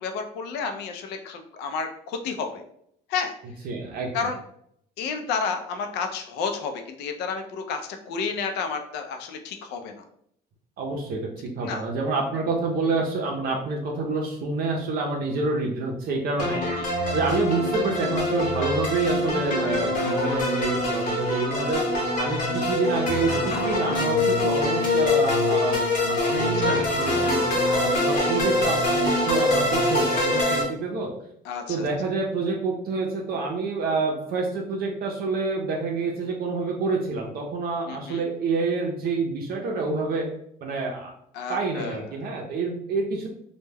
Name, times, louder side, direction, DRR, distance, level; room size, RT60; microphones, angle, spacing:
voice 1, 0.0-2.6 3.1-3.3 4.1-4.4 5.0-10.0 11.6-11.8 16.8-16.9 21.2-21.5 26.4-26.8 28.1-28.3 31.5-31.8 37.9-38.2 41.3-42.0, left 5 dB, 90° left, 6 dB, 0.4 m, -31 dB
voice 2, 3.6-4.3 10.8-16.6 17.1-31.1 31.7-40.3 40.6-41.1 41.5-43.3, right 3 dB, 65° right, 1 dB, 0.5 m, -28 dB
sound 1, 16.4-30.6, left 2 dB, 50° left, 0.9 m, -24 dB
2.2 x 2.1 x 3.2 m, 0.70 s
cardioid pair, 110°, 17 cm